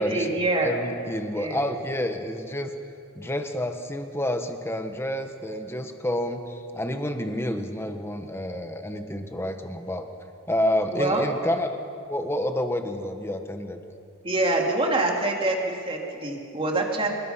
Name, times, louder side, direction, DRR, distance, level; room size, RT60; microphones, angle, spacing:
voice 1, 0.0-0.7 1.3-1.6 10.9-11.2 14.2-17.1, right 2 dB, 25° right, 0 dB, 2.9 m, -25 dB
voice 2, 0.6-2.7 3.2-10.1 10.5-11.8 12.1-13.8, left 1 dB, 10° left, 6 dB, 1.3 m, -29 dB
27.0 x 20.5 x 5.8 m, 2.5 s
head